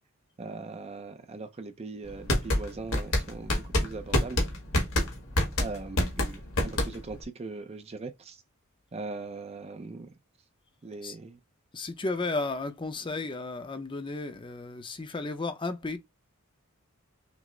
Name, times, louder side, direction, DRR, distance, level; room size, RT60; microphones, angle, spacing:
voice 1, 0.4-4.4 5.6-8.4 8.9-10.1 10.8-11.4, right 3 dB, 30° right, 0.4 m, -40 dB
sound 1, 2.1-7.2, left 1 dB, 70° left, 1.4 m, -26 dB
voice 2, 11.7-16.0, left 3 dB, 25° left, 0.6 m, -33 dB
5.9 x 2.1 x 3.1 m
head